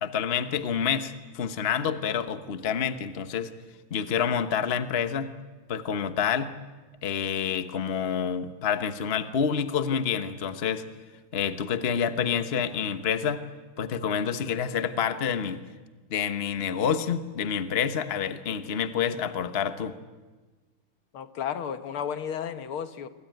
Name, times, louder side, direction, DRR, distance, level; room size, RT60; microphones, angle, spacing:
voice 1, 0.0-3.5 3.9-5.3 5.7-6.5 7.0-10.8 11.3-13.5 13.8-15.6 16.1-20.0, left 7 dB, 35° left, 10 dB, 1.1 m, -28 dB
voice 2, 21.1-23.1, left 8 dB, 80° left, 10 dB, 2.1 m, -33 dB
27.0 x 24.0 x 9.2 m, 1.3 s
omnidirectional pair, 2.3 m